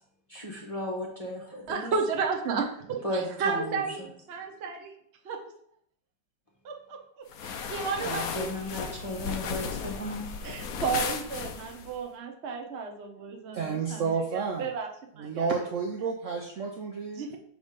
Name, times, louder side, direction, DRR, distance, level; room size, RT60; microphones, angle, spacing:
voice 1, 0.3-1.9 3.0-4.1 8.0-10.3, left 1 dB, 25° left, -3 dB, 0.9 m, -35 dB
voice 2, 1.7-4.0 4.3-4.9 5.2-5.4 6.6-7.0 7.4-9.3 10.4-14.0 14.3-14.9 15.2-15.5 17.1-17.4, right 5 dB, 45° right, 2 dB, 1.0 m, -33 dB
sound 1, 7.3-11.9, left 6 dB, 65° left, 0.9 m, -35 dB
voice 3, 13.5-14.7 15.2-17.3, right 5 dB, 85° right, 2 dB, 0.6 m, -31 dB
6.3 x 3.4 x 5.2 m, 0.64 s
omnidirectional pair, 2.1 m